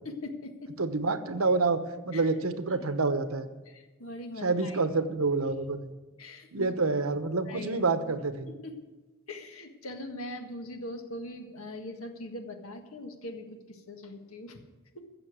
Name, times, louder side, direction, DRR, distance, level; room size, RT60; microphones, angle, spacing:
voice 1, 0.1-0.7 2.1-2.3 2.7-2.9 3.7-4.9 6.2-6.7 7.5-7.8 8.5-8.7 9.3-14.6 15.0-15.1, left 1 dB, 80° left, 5 dB, 1.7 m, -41 dB
voice 2, 0.8-1.8 2.0-3.5 4.4-5.9 6.5-8.5, right 3 dB, 90° right, 10 dB, 1.0 m, -27 dB
15.0 x 7.1 x 8.1 m, 1.2 s
head